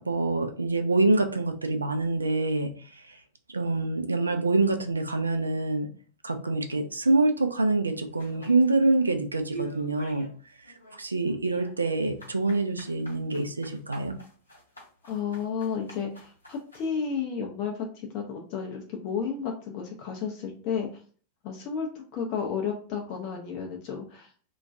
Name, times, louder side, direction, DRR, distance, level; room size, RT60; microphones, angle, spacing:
voice 1, 0.0-3.2 3.5-5.9 6.2-10.3 11.0-14.2, right 2 dB, 80° right, 6 dB, 0.3 m, -26 dB
sound 1, 8.2-9.1 9.5-10.4 10.6-16.9, right 3 dB, 80° left, 0.7 m, -45 dB
voice 2, 15.0-20.9 21.4-21.9 22.1-24.3, left 6 dB, 40° left, 1 dB, 0.4 m, -32 dB
2.3 x 2.2 x 2.5 m, 0.43 s
figure-of-eight pair, 90°, 0 cm